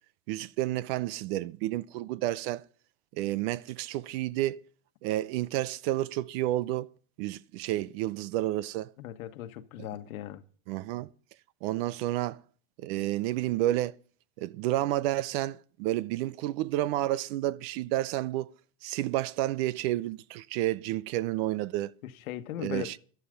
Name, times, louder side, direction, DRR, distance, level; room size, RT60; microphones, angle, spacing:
voice 1, 0.3-2.6 3.1-4.6 5.0-6.9 7.2-8.9 10.7-11.1 11.6-12.4 12.8-13.9 14.4-18.5 18.8-21.9 22.6-23.0, right 15 dB, 45° right, 0.6 m, -30 dB
voice 2, 9.0-10.4 22.0-22.9, left 12 dB, 80° left, 1.6 m, -38 dB
12.0 x 11.5 x 5.2 m
supercardioid pair, 150°, 41 cm